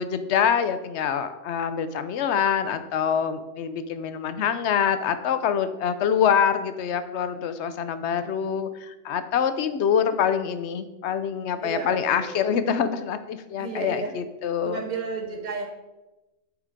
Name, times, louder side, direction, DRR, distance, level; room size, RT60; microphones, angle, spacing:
voice 1, 0.0-14.8, left 7 dB, 65° left, 11 dB, 0.8 m, -25 dB
voice 2, 11.6-12.6 13.6-14.1 14.6-15.7, right 4 dB, 35° right, 2 dB, 1.2 m, -33 dB
6.5 x 4.8 x 5.0 m, 1.0 s
omnidirectional pair, 1.3 m